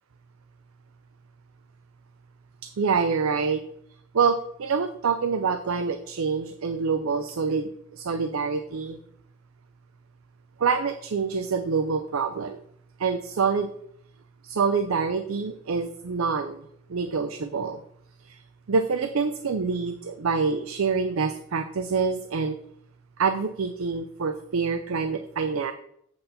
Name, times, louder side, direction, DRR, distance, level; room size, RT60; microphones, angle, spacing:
voice 1, 2.8-3.6 4.1-9.0 10.6-12.6 13.0-13.7 14.4-16.6 16.9-17.8 18.3-18.4 18.7-22.6 23.2-25.7, right 5 dB, 80° right, 9 dB, 0.5 m, -26 dB
7.9 x 4.1 x 6.8 m, 0.71 s
head